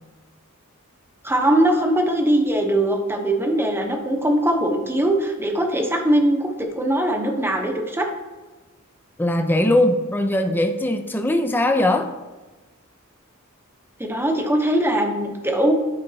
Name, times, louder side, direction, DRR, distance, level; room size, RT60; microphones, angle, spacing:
voice 1, 1.2-6.5 6.8-8.1 14.0-15.7, right 1 dB, 10° right, 2 dB, 0.9 m, -21 dB
voice 2, 9.2-12.1, left 1 dB, 10° left, 5 dB, 0.5 m, -20 dB
10.5 x 5.0 x 2.8 m, 1.2 s
head